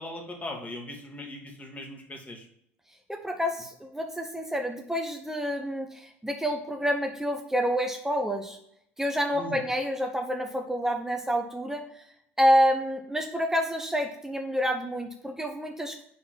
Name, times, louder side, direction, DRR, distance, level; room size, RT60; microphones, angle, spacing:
voice 1, 0.0-2.5 9.3-9.6, left 1 dB, 25° left, 2 dB, 2.0 m, -39 dB
voice 2, 3.1-8.6 9.0-12.0 12.4-16.0, equal, 5° right, 4 dB, 0.9 m, -28 dB
5.5 x 3.9 x 5.7 m, 0.72 s
hypercardioid pair, 70°, 7 cm